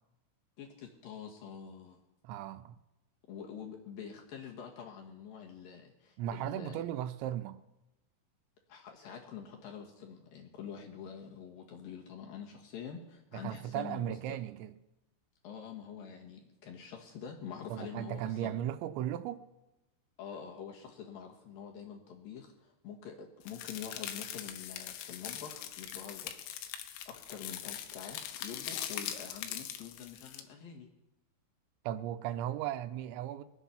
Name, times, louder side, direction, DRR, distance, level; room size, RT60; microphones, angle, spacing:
voice 1, 0.6-2.0 3.3-6.8 8.7-14.4 15.4-18.6 20.2-26.8 27.1-30.9, left 7 dB, 65° left, 0 dB, 2.7 m, -46 dB
voice 2, 2.2-2.8 6.2-7.6 13.3-14.7 17.7-19.5 31.8-33.4, right 11 dB, 85° right, 11 dB, 3.0 m, -36 dB
sound 1, 23.5-30.4, left 10 dB, 85° left, 3.4 m, -42 dB
22.0 x 8.1 x 5.8 m, 0.96 s
omnidirectional pair, 5.3 m